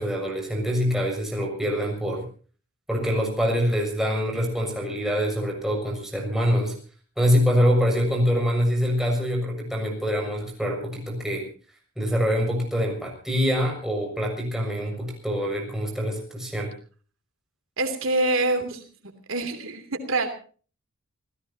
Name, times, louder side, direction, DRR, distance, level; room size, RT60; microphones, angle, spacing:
voice 1, 0.0-2.2 2.9-6.7 7.2-11.5 12.0-16.7, equal, ahead, 0 dB, 6.7 m, -25 dB
voice 2, 17.8-18.8 19.3-20.3, right 2 dB, 65° right, 6 dB, 3.0 m, -25 dB
28.0 x 17.0 x 2.9 m, 0.41 s
head